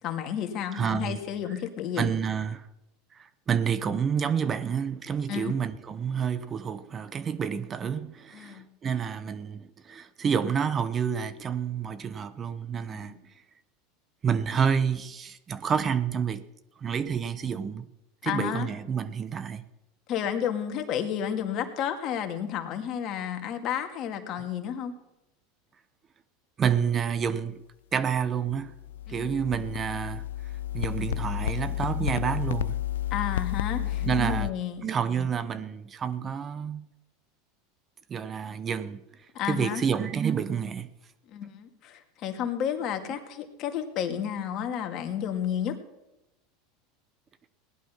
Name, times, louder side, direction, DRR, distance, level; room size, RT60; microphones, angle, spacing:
voice 1, 0.0-2.1 5.3-5.5 8.3-8.7 12.9-13.2 18.3-18.7 20.1-24.9 29.1-29.5 33.1-34.8 39.3-39.8 41.3-45.8, left 9 dB, 50° left, 2.1 m, -31 dB
voice 2, 0.7-1.2 2.0-2.7 3.1-13.2 14.2-16.5 16.8-17.9 18.2-19.6 26.6-27.6 27.9-28.7 29.1-30.3 30.7-32.8 33.7-34.5 34.8-36.9 38.1-39.0 39.4-40.9, right 7 dB, 30° right, 0.9 m, -29 dB
sound 1, 28.5-34.5, left 12 dB, 90° left, 0.4 m, -31 dB
17.5 x 11.0 x 5.7 m
supercardioid pair, 110°, 0 cm